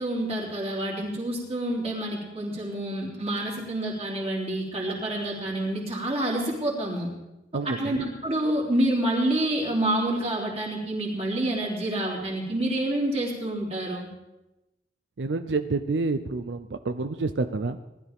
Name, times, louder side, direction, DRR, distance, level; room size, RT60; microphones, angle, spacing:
voice 1, 0.0-7.1 7.6-14.1, right 1 dB, 35° right, -3 dB, 3.6 m, -28 dB
voice 2, 7.5-8.0 15.2-17.8, right 3 dB, 90° right, 9 dB, 0.6 m, -28 dB
19.0 x 12.5 x 3.6 m, 0.96 s
head